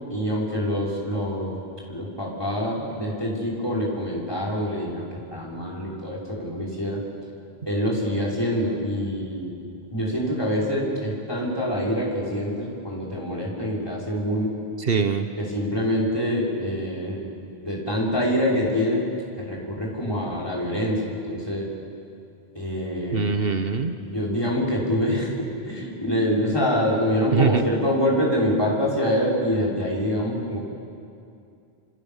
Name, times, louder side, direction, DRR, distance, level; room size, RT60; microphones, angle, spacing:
voice 1, 0.1-1.6 1.9-7.0 7.7-9.6 9.9-14.5 15.4-17.2 17.6-19.0 19.4-21.7 22.5-23.3 24.0-30.7, equal, 25° left, -5 dB, 6.0 m, -25 dB
voice 2, 14.9-15.3 23.1-23.9 27.3-27.6, right 5 dB, 65° right, 7 dB, 1.3 m, -22 dB
27.5 x 27.5 x 7.4 m, 2.5 s
omnidirectional pair, 1.0 m